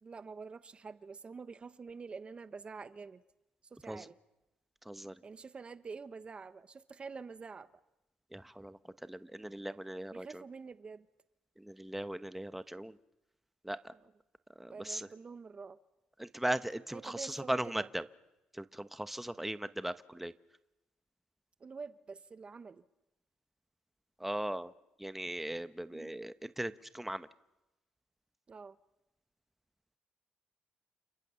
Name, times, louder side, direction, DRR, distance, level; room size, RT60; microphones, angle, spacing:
voice 1, 0.0-3.2 3.6-4.2 5.2-7.8 10.1-11.1 13.9-14.1 14.7-15.8 16.9-17.9 21.6-22.8 25.9-26.2 28.5-28.8, right 5 dB, 35° right, 0.9 m, -47 dB
voice 2, 8.3-10.4 11.6-13.0 13.6-13.9 14.6-15.1 16.2-18.0 18.5-20.3 24.2-24.7 25.0-27.3, right 1 dB, 5° right, 1.0 m, -38 dB
30.0 x 28.0 x 7.0 m
cardioid pair, 85°, 3 cm